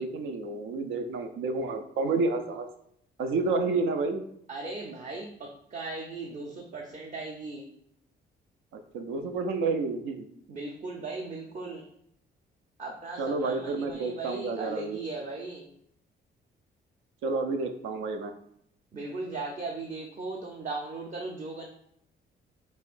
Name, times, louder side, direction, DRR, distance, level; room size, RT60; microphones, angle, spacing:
voice 1, 0.0-2.7 3.2-4.2 8.9-10.3 13.2-15.0 17.2-18.3, right 3 dB, 85° right, 7 dB, 0.5 m, -30 dB
voice 2, 4.5-7.7 10.5-11.8 12.8-15.7 18.9-21.7, right 3 dB, 35° right, 0 dB, 0.7 m, -37 dB
5.5 x 3.0 x 2.5 m, 0.70 s
cardioid pair, 90°, 20 cm